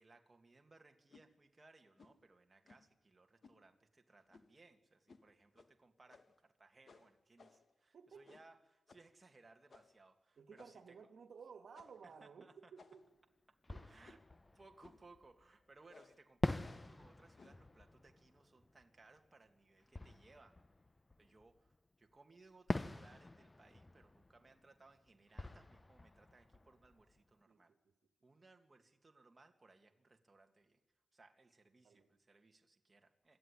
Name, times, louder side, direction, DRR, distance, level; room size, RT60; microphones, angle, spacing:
voice 1, 0.0-11.0 12.0-12.7 13.9-14.2 14.5-20.6 21.2-27.7 28.2-30.8 31.1-33.4, right 3 dB, 30° right, 4 dB, 2.2 m, -65 dB
sound 1, 1.1-1.3 2.0-2.2 2.7-3.0 3.4-3.6 4.3-4.6 5.1-5.3 5.6-5.7 6.1-6.4 6.9-7.7 8.2-8.6 8.9-9.1 9.7-10.0 10.6-10.9 11.7-12.1 12.8-13.2 14.0-14.4 14.8-15.1 15.9-16.2 16.6-17.0 17.4-17.7, left 4 dB, 55° left, 1.6 m, -63 dB
voice 2, 7.9-8.2 10.4-13.0 13.7-13.9 27.5-27.6 31.8-32.1, right 6 dB, 75° right, 9 dB, 1.9 m, -56 dB
Fireworks, 13.0-13.1 13.6-15.6 16.4-21.8 22.7-27.4, left 2 dB, 20° left, 0.8 m, -46 dB
26.0 x 13.5 x 10.0 m, 0.95 s
wide cardioid pair, 100°, 0 cm